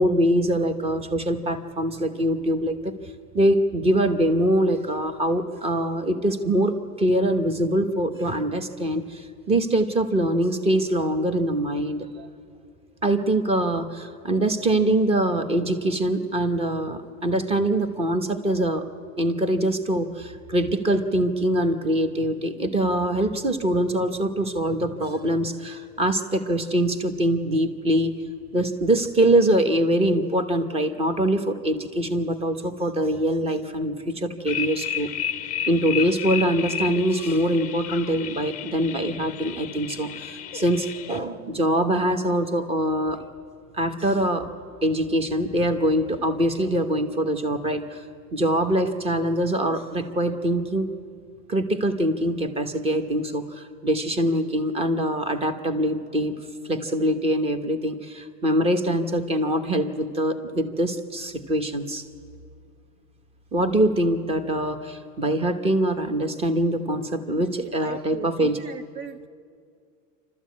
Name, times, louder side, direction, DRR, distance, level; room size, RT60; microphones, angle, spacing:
voice 1, 0.0-2.8 3.3-12.3 13.0-18.9 19.2-28.1 28.5-35.1 35.7-43.2 43.7-44.5 44.8-48.0 48.3-50.9 51.5-56.4 56.7-62.0 63.5-68.6, right 1 dB, 10° right, 9 dB, 1.0 m, -23 dB
sound 1, 34.5-41.2, left 9 dB, 15° left, 0.6 m, -32 dB
voice 2, 67.6-69.3, right 8 dB, 45° right, 9 dB, 0.7 m, -39 dB
27.5 x 13.0 x 8.4 m, 2.3 s
supercardioid pair, 140°, 49 cm